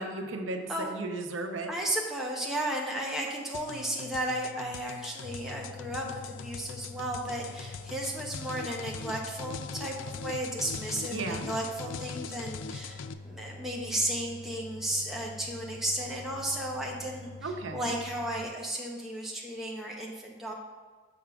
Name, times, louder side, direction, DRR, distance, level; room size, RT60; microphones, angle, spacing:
voice 1, 0.0-1.7 11.1-11.5 17.4-17.9, right 2 dB, 85° right, 4 dB, 0.7 m, -35 dB
voice 2, 1.7-20.5, right 1 dB, ahead, -3 dB, 0.8 m, -34 dB
sound 1, 3.5-13.1, left 6 dB, 85° left, 0.3 m, -42 dB
sound 2, 5.2-18.5, left 2 dB, 40° left, 0.9 m, -46 dB
6.8 x 3.6 x 5.9 m, 1.4 s
head